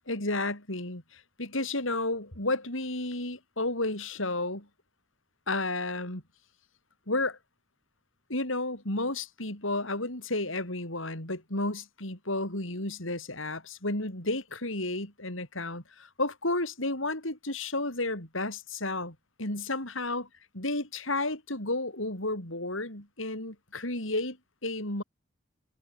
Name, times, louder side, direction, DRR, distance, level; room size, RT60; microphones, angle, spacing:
voice 1, 0.1-4.7 5.5-6.2 7.1-7.4 8.3-20.2 20.5-24.4 24.6-25.0, left 2 dB, 75° left, 7.3 m, -32 dB
head